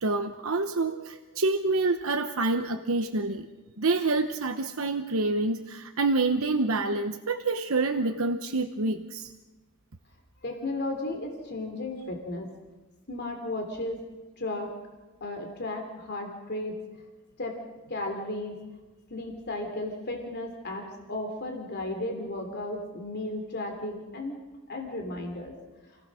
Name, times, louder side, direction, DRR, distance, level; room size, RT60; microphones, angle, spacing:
voice 1, 0.0-3.5 3.8-9.3, right 3 dB, 70° right, 6 dB, 1.0 m, -27 dB
voice 2, 10.4-12.5 13.1-14.0 14.4-14.7 15.2-16.8 17.4-17.6 17.9-18.6 19.1-24.4 24.7-25.5, left 2 dB, 50° left, 3 dB, 3.1 m, -34 dB
29.0 x 17.5 x 6.4 m, 1.2 s
head